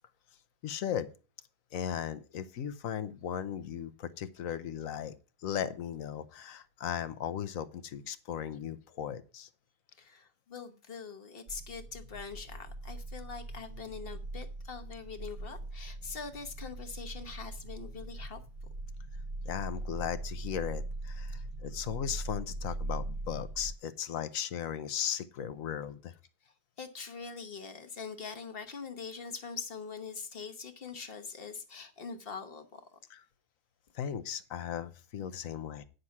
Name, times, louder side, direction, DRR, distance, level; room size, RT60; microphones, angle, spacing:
voice 1, 0.6-1.1 1.7-5.1 5.4-9.5 19.4-26.1 33.1-33.2 33.9-35.8, left 9 dB, 65° left, 1.0 m, -37 dB
voice 2, 10.0-18.4 26.8-33.0, left 5 dB, 40° left, 1.2 m, -43 dB
sound 1, 11.5-23.7, right 2 dB, 45° right, 0.7 m, -41 dB
9.8 x 6.5 x 5.8 m
omnidirectional pair, 1.7 m